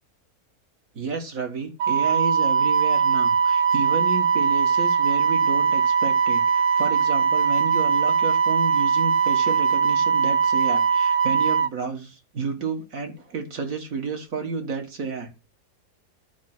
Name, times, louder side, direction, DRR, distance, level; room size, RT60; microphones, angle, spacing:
voice 1, 0.9-15.3, right 4 dB, 55° right, 5 dB, 2.1 m, -31 dB
Wind instrument woodwind instrument, 1.8-11.7, right 6 dB, 70° right, 1.3 m, -21 dB
11.5 x 5.3 x 6.1 m, 0.29 s
omnidirectional pair, 1.7 m